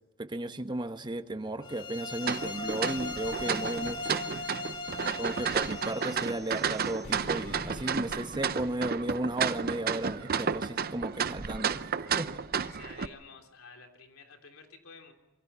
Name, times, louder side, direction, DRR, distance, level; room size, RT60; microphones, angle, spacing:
voice 1, 0.2-4.2 5.2-11.9 12.2-12.4, right 1 dB, 20° right, 9 dB, 1.0 m, -34 dB
sound 1, 1.6-6.4, left 3 dB, 20° left, 1.6 m, -38 dB
sound 2, 2.2-13.1, right 6 dB, 45° right, 0.7 m, -32 dB
voice 2, 4.8-5.3 12.6-15.1, left 4 dB, 75° left, 4 dB, 3.4 m, -52 dB
sound 3, 5.5-9.8, left 1 dB, 55° left, 3.3 m, -48 dB
26.5 x 23.5 x 5.7 m, 1.2 s
head